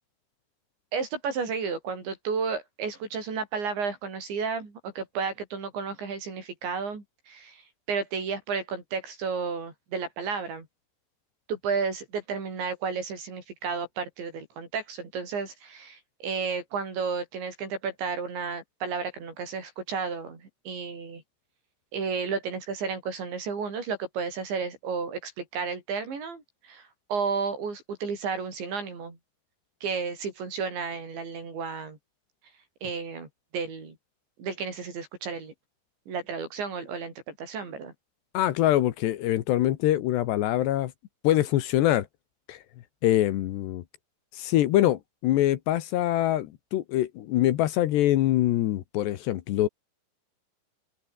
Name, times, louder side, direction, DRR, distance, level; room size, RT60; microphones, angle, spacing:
voice 1, 0.9-7.6 7.9-10.7 11.5-21.2 21.9-29.2 29.8-32.0 32.8-34.0 34.4-35.5 36.1-37.9, right 5 dB, 90° right, 8.9 m, -32 dB
voice 2, 38.3-40.9 41.2-42.1 42.5-42.6 43.0-43.8 44.3-49.7, left 14 dB, 75° left, 3.3 m, -24 dB
open air
omnidirectional pair, 5.0 m